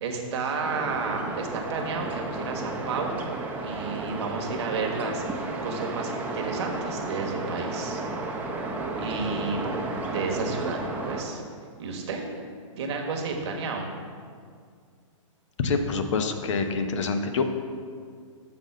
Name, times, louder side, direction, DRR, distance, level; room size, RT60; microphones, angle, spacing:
voice 1, 0.0-3.3 3.6-8.0 9.0-10.8 11.1-11.4 11.8-12.3 12.8-13.9, right 4 dB, 55° right, 2 dB, 1.3 m, -31 dB
sound 1, 0.6-11.2, right 2 dB, 10° right, 0.7 m, -33 dB
voice 2, 15.6-17.4, left 4 dB, 65° left, 6 dB, 0.8 m, -26 dB
7.0 x 3.9 x 6.5 m, 2.1 s
hypercardioid pair, 135°, 17 cm